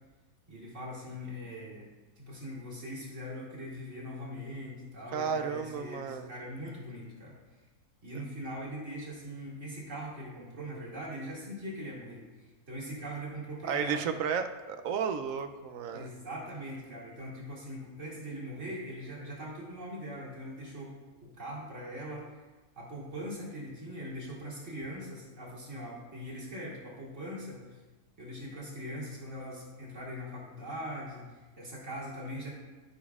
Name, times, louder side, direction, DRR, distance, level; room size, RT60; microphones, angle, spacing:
voice 1, 0.5-1.9 2.2-7.4 8.0-14.0 15.9-20.9 21.2-22.2 22.8-27.8 28.2-32.5, equal, 50° right, -6 dB, 2.6 m, -41 dB
voice 2, 5.1-6.3 13.7-16.1, right 6 dB, 70° right, 8 dB, 0.9 m, -33 dB
15.5 x 5.2 x 2.4 m, 1.2 s
omnidirectional pair, 1.7 m